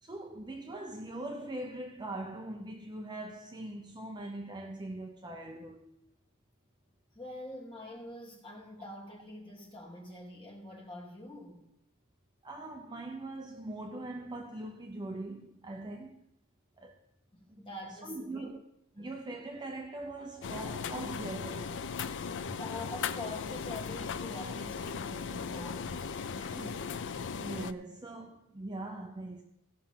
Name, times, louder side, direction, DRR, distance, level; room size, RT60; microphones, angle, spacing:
voice 1, 0.0-5.9 12.4-16.2 16.8-17.0 17.5-17.7 18.0-18.6 19.0-21.9 22.4-22.6 26.4-29.4, right 2 dB, 20° right, 0.8 m, -42 dB
voice 2, 7.1-11.6 17.3-18.5 19.0-19.1 22.6-26.0, left 1 dB, 25° left, 2.8 m, -45 dB
sound 1, 20.4-27.7, left 6 dB, 55° left, 0.5 m, -37 dB
16.5 x 5.8 x 5.7 m
head